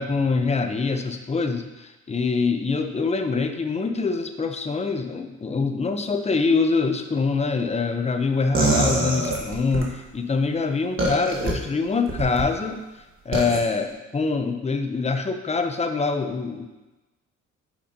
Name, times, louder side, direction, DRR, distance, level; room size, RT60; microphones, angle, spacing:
voice 1, 0.0-12.8 13.2-16.7, left 4 dB, 20° left, 6 dB, 0.6 m, -24 dB
sound 1, 8.5-9.9 11.0-11.5 12.1-12.5 13.3-13.6, right 2 dB, 40° right, 1.5 m, -23 dB
8.7 x 5.0 x 2.8 m, 1.1 s
cardioid pair, 90°, 30 cm